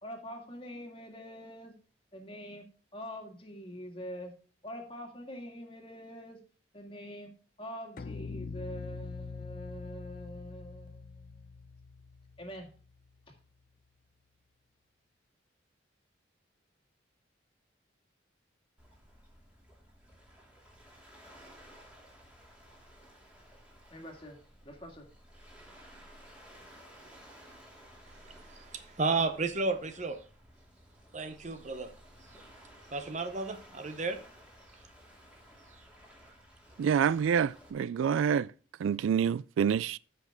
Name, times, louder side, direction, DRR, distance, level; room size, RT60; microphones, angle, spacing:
voice 1, 0.0-1.8 2.1-4.3 4.6-6.4 6.7-11.5 12.4-12.7 23.9-25.1, equal, 25° left, 2.0 m, -45 dB
sound 1, 8.0-13.2, left 4 dB, 45° left, 0.5 m, -44 dB
Waves surf, 18.8-37.7, equal, 5° right, 2.5 m, -56 dB
voice 2, 28.1-30.2 31.1-31.9 32.9-34.2, right 3 dB, 35° right, 0.7 m, -33 dB
voice 3, 36.8-38.5 38.8-40.0, right 7 dB, 85° right, 0.3 m, -27 dB
13.0 x 5.9 x 3.5 m
head